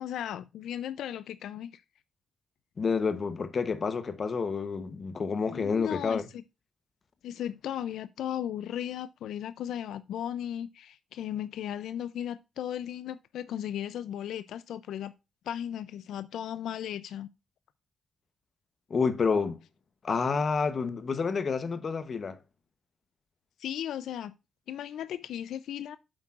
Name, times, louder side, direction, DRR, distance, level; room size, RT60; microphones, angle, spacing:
voice 1, 0.0-1.8 5.5-6.4 7.2-15.1 15.5-17.3 23.6-24.4 24.7-26.0, left 10 dB, 75° left, 0.3 m, -36 dB
voice 2, 2.8-6.2 18.9-19.6 20.0-22.4, left 5 dB, 30° left, 0.8 m, -29 dB
8.5 x 7.5 x 2.4 m
cardioid pair, 170°, 0 cm